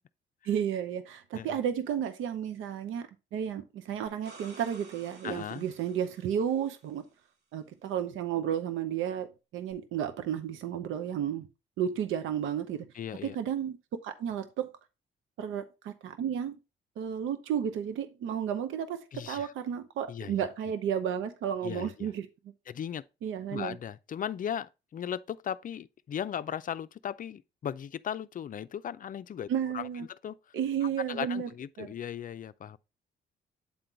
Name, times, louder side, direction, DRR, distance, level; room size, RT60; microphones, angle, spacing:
voice 1, 0.4-7.1 7.5-11.5 11.8-12.9 13.2-14.7 15.4-16.6 17.0-22.3 23.2-23.8 29.5-30.1 30.5-31.5 31.8-31.9, right 9 dB, 85° right, 0.8 m, -32 dB
sound 1, 4.1-6.9 9.7-9.8, right 3 dB, 60° right, 1.7 m, -53 dB
voice 2, 5.2-5.7 12.9-13.4 19.1-19.5 20.1-20.4 21.6-22.1 22.7-23.0 23.5-29.5 29.7-30.4 30.8-32.8, left 9 dB, 45° left, 0.5 m, -37 dB
8.5 x 3.8 x 4.3 m
cardioid pair, 90°, 20 cm